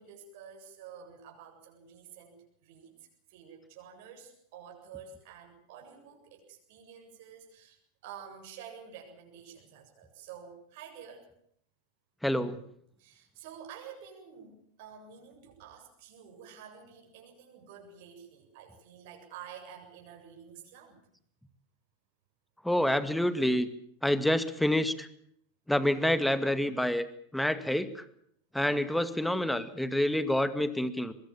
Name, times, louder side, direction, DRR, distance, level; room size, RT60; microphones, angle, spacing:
voice 1, 0.0-2.9 3.3-11.3 13.0-21.0, right 7 dB, 55° right, 2 dB, 7.8 m, -49 dB
voice 2, 12.2-12.6 22.6-23.7 24.0-25.1 25.7-27.1 27.3-28.0 28.5-31.1, left 1 dB, 5° left, 12 dB, 2.2 m, -27 dB
23.0 x 22.5 x 7.3 m, 0.67 s
figure-of-eight pair, 90°, 0 cm